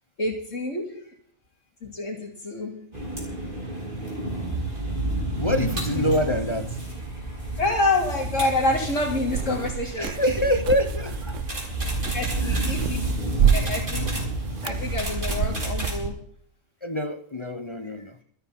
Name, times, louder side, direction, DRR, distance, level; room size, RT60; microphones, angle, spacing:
voice 1, 0.2-1.0 1.8-2.8 5.9-6.0 7.6-10.1 12.1-13.0 13.5-14.1 14.6-16.2, left 2 dB, 55° left, 3.5 m, -27 dB
sound 1, 2.9-16.1, right 2 dB, 35° right, 5.4 m, -30 dB
voice 2, 5.4-6.8 10.0-11.4 12.4-12.8 16.8-18.2, left 1 dB, 25° left, 0.8 m, -26 dB
sound 2, 9.3-16.1, right 9 dB, 65° right, 1.1 m, -29 dB
27.0 x 9.3 x 4.3 m
omnidirectional pair, 1.5 m